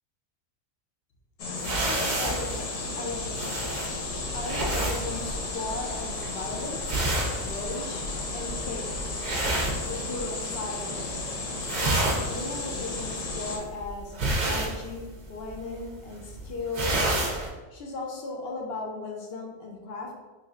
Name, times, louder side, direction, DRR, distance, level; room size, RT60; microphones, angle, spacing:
sound 1, 1.4-13.6, left 3 dB, 75° left, 1.0 m, -34 dB
sound 2, 1.6-10.5 10.8-11.3 11.5-17.5, right 2 dB, 50° right, 0.5 m, -30 dB
voice 1, 1.8-3.7 4.3-7.0 7.4-8.0 8.3-9.3 9.8-11.2 11.7-17.0 17.7-20.1, left 3 dB, 60° left, 1 dB, 0.7 m, -37 dB
3.3 x 2.6 x 3.5 m, 1.2 s
omnidirectional pair, 1.4 m